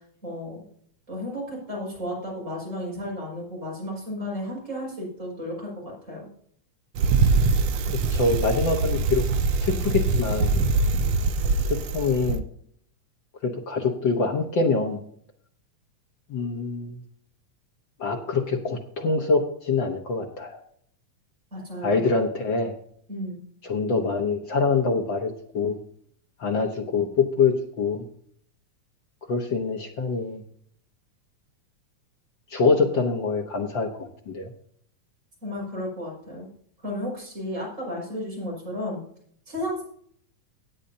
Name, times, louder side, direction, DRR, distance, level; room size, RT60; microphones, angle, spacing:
voice 1, 0.2-0.6 1.1-6.3 21.5-22.0 23.1-23.4 35.4-36.5 36.8-39.0 39.5-39.8, left 1 dB, 20° right, -3 dB, 5.9 m, -33 dB
Bicycle, 7.0-12.4, right 4 dB, 75° right, 1.5 m, -23 dB
voice 2, 7.9-9.2 9.6-10.5 11.6-12.4 13.4-15.0 16.3-17.0 18.0-20.6 21.8-22.7 23.6-25.8 26.4-28.0 29.3-30.4 32.5-34.5, left 4 dB, 60° left, 2 dB, 1.3 m, -25 dB
17.0 x 8.9 x 2.7 m, 0.63 s
omnidirectional pair, 3.5 m